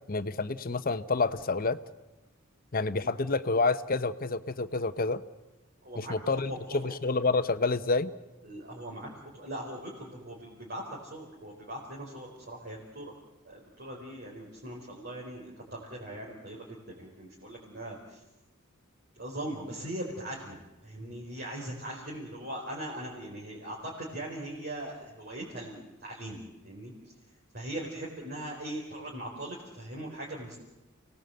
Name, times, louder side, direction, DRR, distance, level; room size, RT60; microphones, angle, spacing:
voice 1, 0.1-1.8 2.7-5.2 6.0-8.1, left 3 dB, 45° left, 11 dB, 0.9 m, -28 dB
voice 2, 8.4-13.1 13.4-18.2 19.1-26.9 27.5-30.6, right 1 dB, 50° right, -3 dB, 4.4 m, -40 dB
29.5 x 19.0 x 7.8 m, 1.1 s
head